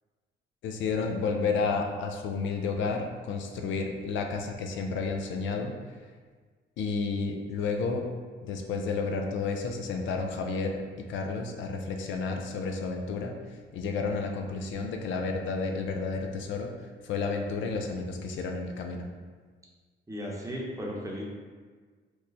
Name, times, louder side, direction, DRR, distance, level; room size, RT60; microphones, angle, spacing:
voice 1, 0.6-5.7 6.8-8.0 8.4-19.1, left 4 dB, 75° left, 3 dB, 0.4 m, -31 dB
voice 2, 20.1-21.2, equal, 15° right, -3 dB, 0.8 m, -35 dB
3.1 x 2.2 x 3.9 m, 1.5 s
cardioid pair, 90°, 20 cm